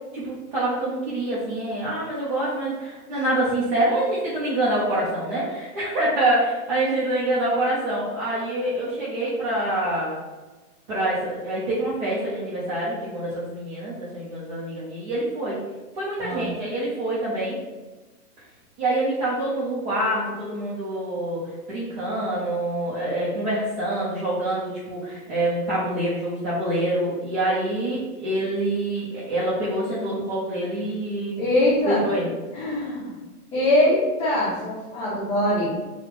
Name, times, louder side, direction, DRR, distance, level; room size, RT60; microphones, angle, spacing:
voice 1, 0.1-10.2 10.9-15.6 15.9-17.6 18.8-31.5 31.9-32.3, right 1 dB, 35° right, -9 dB, 0.8 m, -26 dB
voice 2, 31.4-32.0 32.5-33.1 33.5-35.7, left 1 dB, 10° left, -18 dB, 1.1 m, -22 dB
3.6 x 2.4 x 3.1 m, 1.2 s
hypercardioid pair, 165°, 46 cm